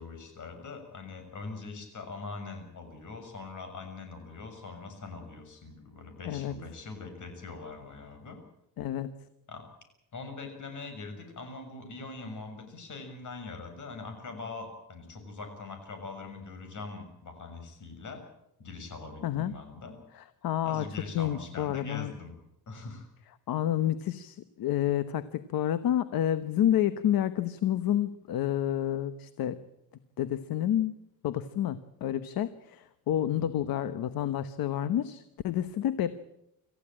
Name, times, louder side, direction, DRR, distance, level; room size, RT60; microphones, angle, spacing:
voice 1, 0.0-8.4 9.5-9.7 10.1-18.2 18.6-20.0 20.6-22.4 22.7-23.1 33.5-33.6, left 3 dB, 55° left, 6 dB, 6.7 m, -42 dB
voice 2, 8.8-9.1 19.2-19.5 20.1-20.9 21.1-22.1 23.5-29.6 30.2-30.9 31.2-36.1, left 11 dB, 70° left, 12 dB, 1.1 m, -29 dB
26.5 x 15.0 x 8.8 m, 0.85 s
cardioid pair, 110°, 37 cm